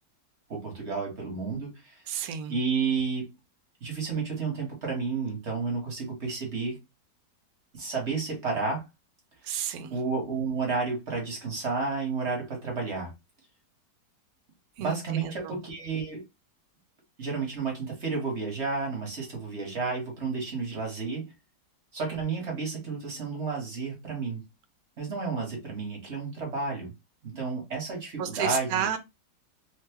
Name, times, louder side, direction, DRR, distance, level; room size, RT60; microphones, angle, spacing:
voice 1, 0.5-2.0 2.5-3.3 3.8-6.8 7.7-8.8 9.9-13.1 14.8-16.2 17.2-21.3 21.9-24.4 25.0-26.9 27.2-28.8, right 4 dB, 45° right, 1.2 m, -31 dB
voice 2, 2.1-2.6 9.4-9.9 14.8-15.6 28.2-29.0, right 9 dB, 70° right, 1.0 m, -32 dB
3.0 x 2.2 x 3.4 m
omnidirectional pair, 1.9 m